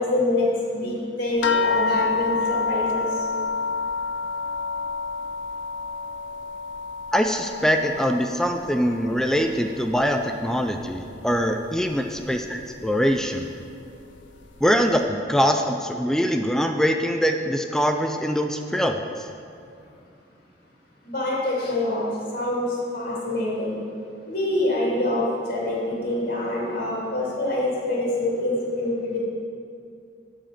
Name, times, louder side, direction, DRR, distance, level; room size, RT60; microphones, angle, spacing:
voice 1, 0.0-3.1 21.0-22.1 22.3-23.8 24.3-29.2, left 1 dB, 55° left, -5 dB, 2.6 m, -25 dB
sound 1, 1.4-10.3 10.6-11.4 12.2-12.3 12.7-12.9, left 4 dB, 80° left, 0.5 m, -29 dB
voice 2, 7.1-13.5 14.6-19.3, equal, 5° left, 5 dB, 0.4 m, -23 dB
12.0 x 5.0 x 5.8 m, 2.5 s
head